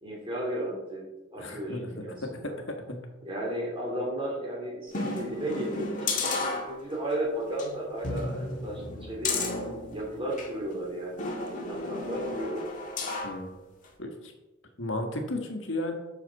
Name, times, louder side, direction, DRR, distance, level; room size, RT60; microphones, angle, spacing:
voice 1, 0.0-1.0 1.3-2.5 3.2-9.3 9.9-12.7, right 1 dB, 25° right, -3 dB, 2.8 m, -34 dB
voice 2, 1.4-1.9 2.2-2.4 13.2-13.5 14.0-14.3 14.8-15.9, left 1 dB, 70° left, 4 dB, 1.5 m, -33 dB
sound 1, 4.9-7.1 7.5-7.7 8.0-10.5 11.2-13.4 13.8-13.9, left 3 dB, 40° left, 1.6 m, -33 dB
9.1 x 6.5 x 4.1 m, 1.1 s
head